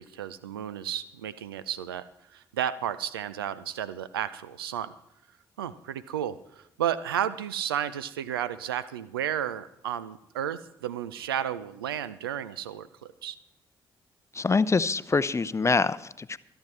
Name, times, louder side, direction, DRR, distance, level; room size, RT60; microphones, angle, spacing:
voice 1, 0.0-4.9 5.6-13.4, right 10 dB, 85° right, 17 dB, 0.5 m, -33 dB
voice 2, 14.3-16.4, left 4 dB, 25° left, 17 dB, 0.6 m, -25 dB
25.0 x 9.1 x 3.2 m, 0.82 s
figure-of-eight pair, 40°, 12 cm